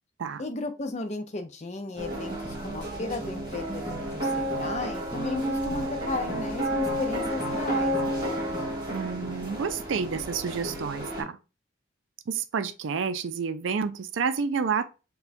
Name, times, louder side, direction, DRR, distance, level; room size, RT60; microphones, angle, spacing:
voice 1, 0.4-8.4, left 2 dB, 35° left, 0.5 m, -35 dB
sound 1, 2.0-11.2, equal, 25° right, 1.3 m, -31 dB
voice 2, 8.9-11.1 12.3-14.8, right 6 dB, 75° right, 0.4 m, -29 dB
4.2 x 2.2 x 2.6 m
head